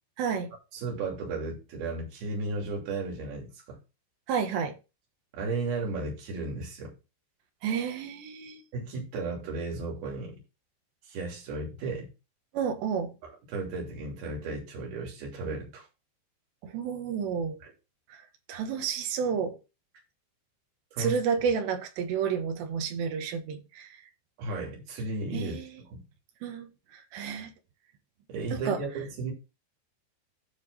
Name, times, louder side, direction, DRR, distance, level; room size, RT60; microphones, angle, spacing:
voice 1, 0.2-0.5 4.3-4.8 7.6-8.6 12.5-13.1 16.6-17.6 18.1-18.2 18.5-19.6 21.0-24.0 25.3-25.8 26.4-27.5 28.5-28.8, right 6 dB, 70° right, 3.3 m, -31 dB
voice 2, 0.7-3.8 5.4-6.9 8.7-10.4 11.0-12.1 13.2-15.9 17.6-17.7 20.9-21.2 24.4-26.0 28.3-29.3, right 3 dB, 55° right, 4.7 m, -34 dB
13.0 x 4.6 x 4.1 m
omnidirectional pair, 5.5 m